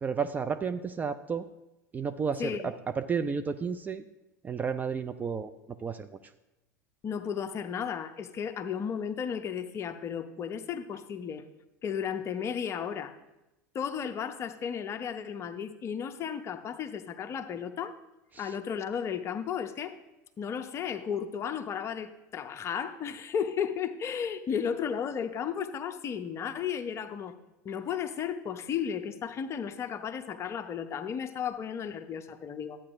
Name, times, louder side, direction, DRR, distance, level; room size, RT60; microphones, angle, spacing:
voice 1, 0.0-1.4 1.9-4.0 4.4-5.5 5.8-6.1 18.3-18.5, right 6 dB, 15° right, 9 dB, 0.4 m, -32 dB
voice 2, 2.4-2.7 7.0-11.4 11.8-13.1 13.7-18.0 18.4-19.9 20.4-27.3 27.6-32.8, left 7 dB, 30° left, 9 dB, 0.7 m, -34 dB
13.0 x 8.6 x 2.5 m, 0.98 s
figure-of-eight pair, 85°, 10 cm